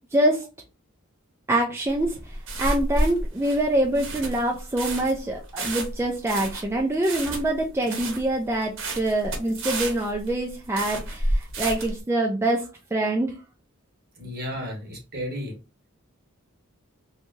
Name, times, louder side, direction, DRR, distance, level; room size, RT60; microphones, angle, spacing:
voice 1, 0.1-0.4 1.5-12.7 12.9-13.3, right 1 dB, 10° right, 0 dB, 0.3 m, -25 dB
sound 1, 1.9-12.0, right 1 dB, 65° right, 1.0 m, -30 dB
voice 2, 14.2-15.5, equal, 50° right, 0 dB, 1.2 m, -33 dB
3.1 x 2.2 x 2.6 m, 0.30 s
head